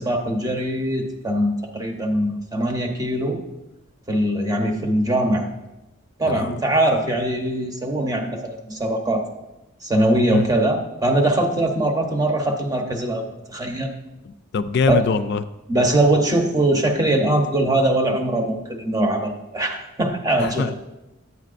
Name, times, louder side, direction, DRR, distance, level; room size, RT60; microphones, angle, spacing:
voice 1, 0.0-3.4 4.1-5.5 6.2-9.2 9.8-13.9 14.9-15.0 15.7-20.7, right 1 dB, 15° right, 2 dB, 0.8 m, -21 dB
voice 2, 6.3-6.6 10.3-10.5 14.3-15.4 20.4-20.7, left 5 dB, 50° left, 11 dB, 0.3 m, -23 dB
9.5 x 9.1 x 2.5 m, 0.96 s
head